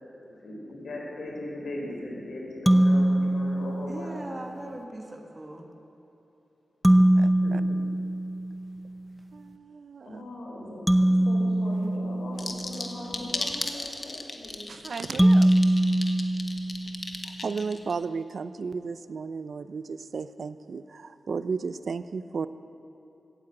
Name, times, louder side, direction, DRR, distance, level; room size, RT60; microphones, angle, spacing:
voice 1, 0.2-4.4 7.4-7.8 10.0-10.8 11.3-15.0, left 1 dB, 70° left, -2 dB, 4.3 m, -39 dB
sound 1, 2.7-4.3 6.8-8.9 10.9-13.0 15.2-17.2, right 1 dB, ahead, 0.7 m, -23 dB
voice 2, 3.9-5.7, right 1 dB, 20° right, 1 dB, 1.6 m, -40 dB
voice 3, 7.2-7.6 9.3-10.2 14.7-15.9 17.4-22.5, right 5 dB, 60° right, 13 dB, 0.5 m, -34 dB
sound 2, 12.4-17.9, left 3 dB, 35° left, 1.2 m, -34 dB
16.5 x 9.7 x 7.7 m, 2.9 s
wide cardioid pair, 135°, 0 cm